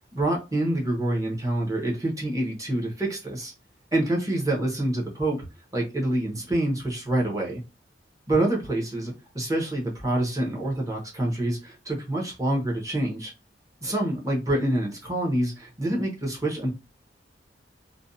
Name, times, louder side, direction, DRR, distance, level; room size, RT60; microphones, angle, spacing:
voice 1, 0.1-3.5 3.9-5.5 5.7-7.6 8.3-13.3 13.8-16.7, right 1 dB, 20° right, 0.8 m, -26 dB
2.6 x 2.2 x 2.6 m
head